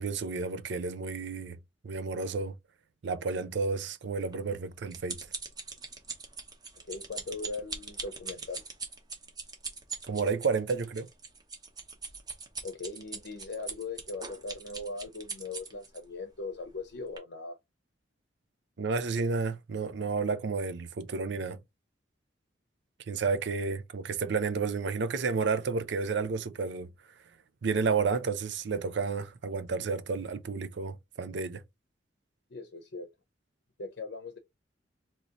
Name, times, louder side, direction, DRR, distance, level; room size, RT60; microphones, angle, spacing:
voice 1, 0.0-1.6 1.8-2.5 3.0-5.2 10.0-11.1 18.8-21.6 23.1-26.9 27.6-31.6, right 4 dB, 65° right, 0.5 m, -31 dB
sound 1, 4.3-16.0 16.6-16.8 17.2-17.3, right 4 dB, 20° right, 0.8 m, -41 dB
voice 2, 6.9-8.6 12.6-17.6 32.5-33.1 33.8-34.4, left 3 dB, 65° left, 0.7 m, -39 dB
2.8 x 2.8 x 3.7 m
head